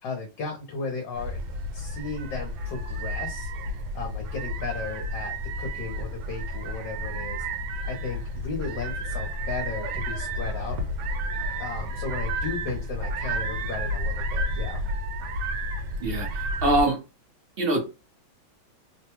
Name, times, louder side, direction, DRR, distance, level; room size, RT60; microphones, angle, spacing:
voice 1, 0.0-1.5 1.7-3.5 3.9-7.4 7.8-10.8 11.6-14.8, left 4 dB, 70° left, 1 dB, 1.4 m, -35 dB
sound 1, 1.2-16.8, equal, 80° right, 1.3 m, -31 dB
voice 2, 16.0-17.0 17.6-17.8, right 2 dB, 45° right, 0 dB, 0.8 m, -24 dB
3.4 x 2.2 x 2.9 m, 0.28 s
omnidirectional pair, 2.2 m